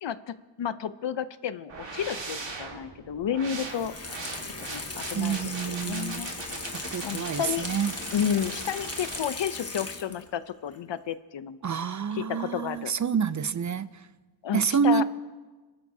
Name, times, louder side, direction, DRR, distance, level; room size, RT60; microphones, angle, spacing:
voice 1, 0.0-3.9 4.6-5.4 5.7-6.5 7.0-7.7 8.1-11.6 12.1-12.9 14.4-15.0, left 8 dB, 70° left, 15 dB, 0.6 m, -31 dB
sound 1, 1.7-9.2, right 3 dB, 75° right, 1.9 m, -40 dB
Water tap faucet / Sink (filling or washing), 3.6-10.4 10.7-10.8, left 3 dB, 35° left, 1.2 m, -38 dB
voice 2, 5.1-6.3 6.7-7.9 11.6-14.1 14.5-15.0, right 6 dB, 40° right, 15 dB, 0.4 m, -28 dB
27.5 x 12.5 x 2.7 m, 1.3 s
wide cardioid pair, 110°, 45 cm